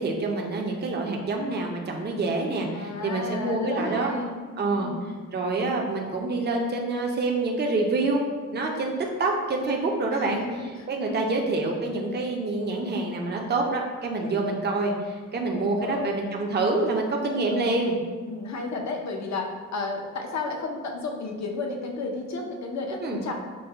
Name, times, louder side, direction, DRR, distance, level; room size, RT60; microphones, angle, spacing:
voice 1, 0.0-4.1 4.6-4.9 5.3-8.3 8.5-10.4 10.9-18.0 23.0-23.2, right 3 dB, 35° right, 1 dB, 0.5 m, -27 dB
voice 2, 2.7-4.4 4.8-5.1 10.1-10.5 10.8-11.3 15.5-16.1 17.2-17.7 18.2-23.3, left 3 dB, 65° left, 2 dB, 0.6 m, -33 dB
5.3 x 2.1 x 4.3 m, 1.5 s
wide cardioid pair, 150°, 30 cm